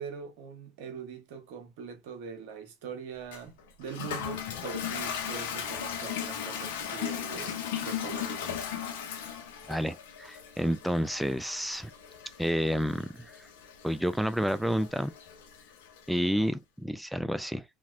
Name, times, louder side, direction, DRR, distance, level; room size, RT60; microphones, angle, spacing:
voice 1, 0.0-8.5, right 6 dB, 70° right, 1.0 m, -42 dB
Toilet flush, 3.3-16.1, left 8 dB, 80° left, 0.7 m, -37 dB
voice 2, 9.7-11.9 12.4-13.3 13.8-15.1 16.1-17.6, equal, 5° right, 0.3 m, -30 dB
2.8 x 2.8 x 2.5 m
hypercardioid pair, 80°, 0 cm